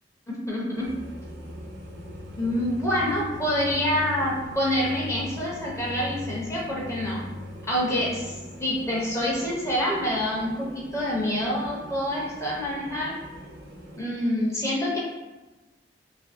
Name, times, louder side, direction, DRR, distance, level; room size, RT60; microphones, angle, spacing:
voice 1, 0.3-0.9 2.4-7.2 7.7-13.2 14.0-15.0, equal, 15° left, -5 dB, 0.5 m, -27 dB
sound 1, 0.7-14.0, right 1 dB, 65° right, 0.5 m, -44 dB
sound 2, 0.9-8.6, left 3 dB, 55° left, 0.8 m, -41 dB
2.5 x 2.5 x 2.4 m, 1.1 s
head